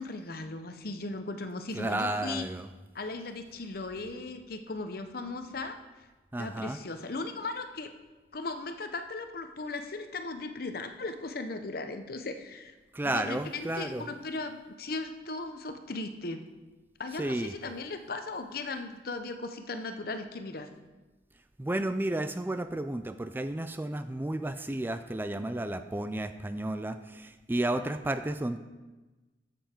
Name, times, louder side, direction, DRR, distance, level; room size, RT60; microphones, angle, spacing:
voice 1, 0.0-2.5 2.9-5.8 6.4-7.9 8.3-12.7 13.0-16.4 17.0-20.7, left 3 dB, 60° left, 8 dB, 0.8 m, -37 dB
voice 2, 1.7-2.7 6.3-6.8 12.9-14.0 17.2-17.5 21.6-28.6, right 1 dB, 10° right, 10 dB, 0.4 m, -32 dB
11.5 x 7.9 x 4.5 m, 1.2 s
head